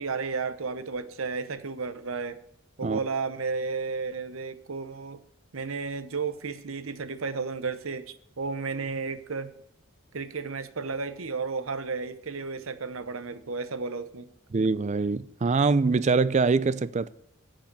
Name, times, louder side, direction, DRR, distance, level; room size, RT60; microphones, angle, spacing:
voice 1, 0.0-2.4 2.8-5.2 5.5-9.5 10.1-14.3, right 4 dB, 70° right, 0.8 m, -33 dB
voice 2, 14.5-17.1, right 4 dB, 35° right, 0.4 m, -24 dB
8.9 x 7.6 x 5.4 m
head